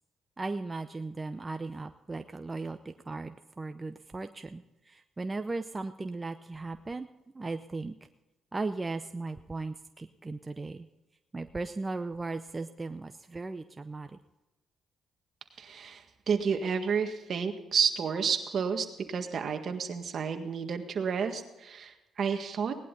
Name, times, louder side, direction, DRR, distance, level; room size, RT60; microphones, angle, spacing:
voice 1, 0.4-7.1 7.3-8.0 8.5-10.9 11.3-14.2, right 3 dB, 20° right, 8 dB, 0.6 m, -37 dB
voice 2, 15.6-22.8, right 6 dB, 55° right, 6 dB, 1.7 m, -31 dB
18.0 x 11.0 x 4.0 m, 1.0 s
cardioid pair, 90°, 0 cm